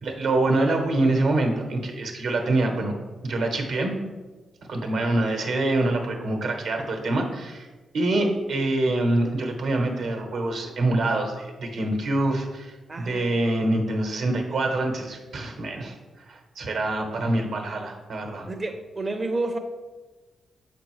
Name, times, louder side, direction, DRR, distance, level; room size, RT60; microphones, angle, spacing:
voice 1, 0.0-2.9 3.2-4.0 4.7-7.7 7.9-16.0 16.3-18.5, right 2 dB, 80° right, 3 dB, 1.0 m, -25 dB
voice 2, 12.9-13.4 18.5-19.6, right 2 dB, 35° right, 4 dB, 0.5 m, -30 dB
6.9 x 5.1 x 3.1 m, 1.3 s
cardioid pair, 70°, 0 cm